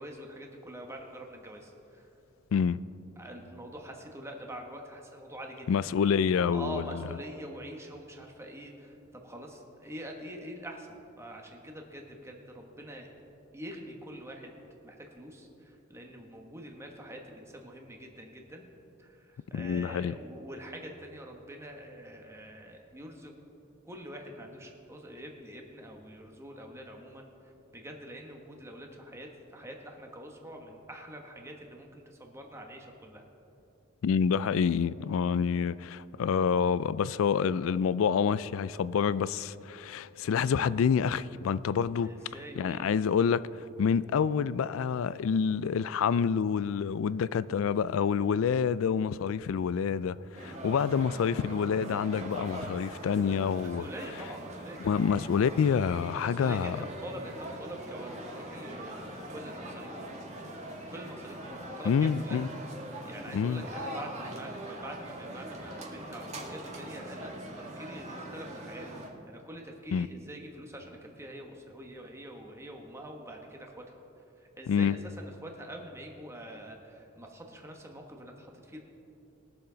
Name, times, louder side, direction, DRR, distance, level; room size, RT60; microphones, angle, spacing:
voice 1, 0.0-2.1 3.2-5.8 6.5-13.1 13.5-14.5 14.8-18.7 19.0-23.3 23.8-33.2 42.0-42.9 53.6-55.1 56.2-60.1 60.9-62.5 63.0-68.9 69.3-73.9 74.4-78.8, equal, 15° right, 1.3 m, -45 dB
voice 2, 5.7-7.0 19.5-20.2 34.0-42.1 42.6-53.9 54.8-56.8 61.9-62.5 63.3-63.6 69.9-70.1 74.7-75.0, left 6 dB, 70° left, 0.3 m, -27 dB
sound 1, 50.3-69.1, right 1 dB, 35° right, 1.6 m, -42 dB
21.0 x 7.1 x 3.9 m
head